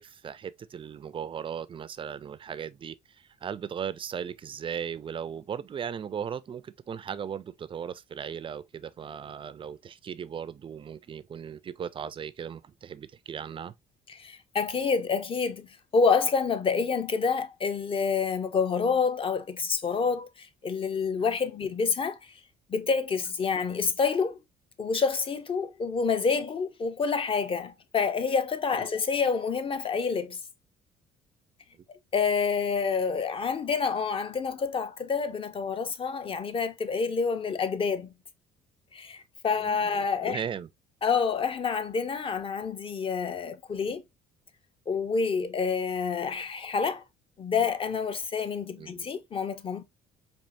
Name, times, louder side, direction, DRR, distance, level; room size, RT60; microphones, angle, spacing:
voice 1, 0.0-13.7 28.8-28.9 39.6-39.9 40.2-40.7 48.8-49.1, right 8 dB, 30° right, 0.4 m, -37 dB
voice 2, 14.2-15.7 15.9-22.2 22.7-24.4 24.8-30.4 32.1-38.1 38.9-40.4 41.0-44.0 44.9-47.0 47.4-49.8, left 5 dB, 30° left, 0.6 m, -28 dB
4.4 x 2.8 x 2.5 m
cardioid pair, 110°, 17 cm